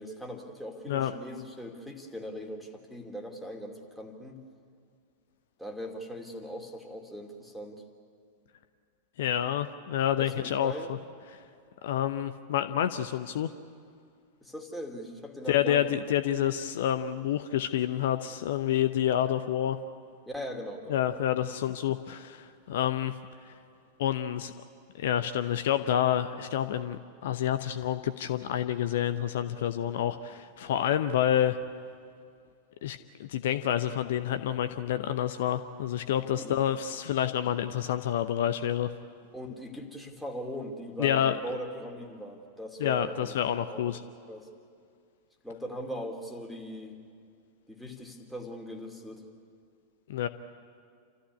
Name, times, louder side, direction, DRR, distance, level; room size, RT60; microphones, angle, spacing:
voice 1, 0.0-4.4 5.6-7.8 10.2-10.9 14.4-15.9 20.3-21.2 36.4-36.5 39.3-43.4 43.7-43.9 44.3-44.5 45.4-47.0 47.7-49.3, equal, ahead, 1 dB, 2.7 m, -40 dB
voice 2, 9.2-10.7 11.3-11.4 11.8-13.5 15.5-19.8 20.9-23.1 23.5-23.6 24.0-24.5 24.9-31.6 32.8-38.9 41.0-41.3 42.8-44.0 50.1-50.3, left 10 dB, 55° left, 11 dB, 0.7 m, -28 dB
28.0 x 14.0 x 9.7 m, 2.2 s
figure-of-eight pair, 90°, 0 cm